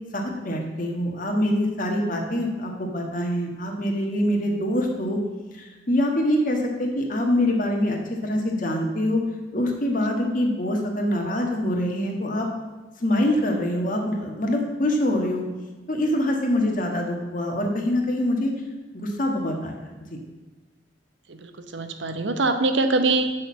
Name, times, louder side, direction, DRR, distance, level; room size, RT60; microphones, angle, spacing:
voice 1, 0.1-5.2 5.5-9.2 9.5-12.5 13.0-15.4 15.9-18.5 18.9-20.2, left 1 dB, 45° left, 2 dB, 1.5 m, -24 dB
voice 2, 21.3-23.3, right 3 dB, 75° right, 8 dB, 0.8 m, -23 dB
6.5 x 6.4 x 7.4 m, 1.2 s
head